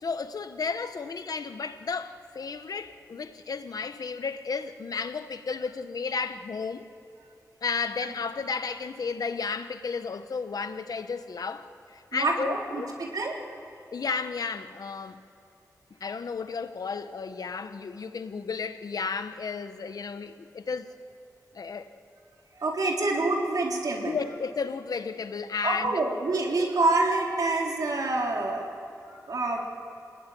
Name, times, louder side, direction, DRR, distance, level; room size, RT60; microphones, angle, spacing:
voice 1, 0.0-6.9 7.6-11.7 11.9-13.0 13.9-15.2 16.0-20.9 21.5-21.9 24.0-26.0, left 5 dB, 70° left, 1.1 m, -33 dB
voice 2, 12.1-13.4 22.6-24.2 25.6-28.7 29.1-29.6, right 2 dB, 70° right, 3.6 m, -27 dB
28.5 x 19.0 x 9.3 m
wide cardioid pair, 125°, 7 cm